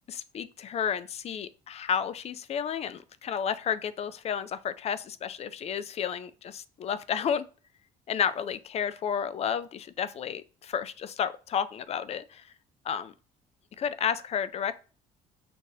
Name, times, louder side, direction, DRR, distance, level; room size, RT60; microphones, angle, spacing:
voice 1, 0.1-7.4 8.1-12.5 12.8-13.1 13.8-14.8, left 8 dB, 40° left, 0.4 m, -31 dB
6.4 x 2.5 x 2.7 m
cardioid pair, 110°, 17 cm